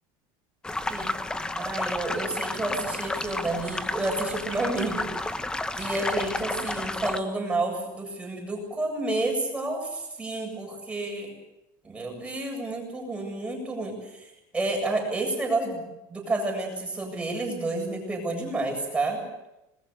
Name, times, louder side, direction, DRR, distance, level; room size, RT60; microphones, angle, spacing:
sound 1, 0.6-7.2, left 2 dB, 10° left, 1.1 m, -31 dB
voice 1, 1.6-5.4 5.7-11.3 11.8-19.2, right 2 dB, 10° right, 1 dB, 7.8 m, -30 dB
26.5 x 21.0 x 6.8 m, 0.89 s
cardioid pair, 150°, 10 cm